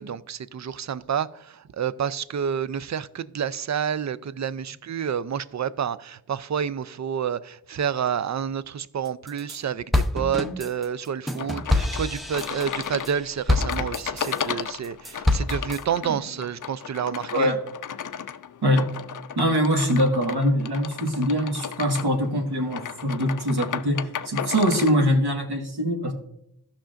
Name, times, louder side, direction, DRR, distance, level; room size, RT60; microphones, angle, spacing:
voice 1, 0.0-17.5, right 8 dB, 45° right, 0.4 m, -29 dB
sound 1, 9.1-9.6 9.9-14.4 14.8-15.8, left 2 dB, ahead, 0.7 m, -26 dB
sound 2, 11.4-25.0, left 8 dB, 50° left, 0.4 m, -34 dB
voice 2, 19.4-26.1, equal, 70° right, 1.6 m, -23 dB
15.0 x 5.8 x 2.5 m
wide cardioid pair, 55°, 41 cm